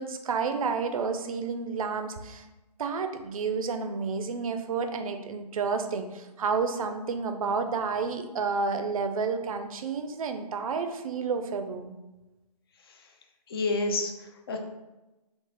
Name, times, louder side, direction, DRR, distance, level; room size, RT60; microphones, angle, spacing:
voice 1, 0.0-2.5 2.8-11.9, right 5 dB, 55° right, 7 dB, 0.4 m, -30 dB
voice 2, 13.5-14.6, left 3 dB, 35° left, 4 dB, 0.4 m, -29 dB
3.6 x 2.4 x 3.1 m, 1.0 s
hypercardioid pair, 150°, 21 cm